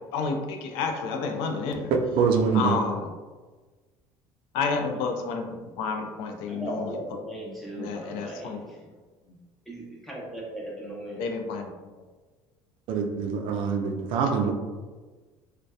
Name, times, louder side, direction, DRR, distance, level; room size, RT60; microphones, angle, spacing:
voice 1, 0.1-1.9 2.5-3.1 4.5-5.4 5.8-7.0 7.8-8.6 11.2-11.7, left 4 dB, 75° left, 3 dB, 0.4 m, -30 dB
voice 2, 2.1-2.8 12.9-14.5, right 6 dB, 60° right, 3 dB, 0.3 m, -24 dB
voice 3, 6.5-8.9 9.7-11.2, right 1 dB, ahead, -5 dB, 0.6 m, -38 dB
2.6 x 2.1 x 2.2 m, 1.3 s
cardioid pair, 125°, 10 cm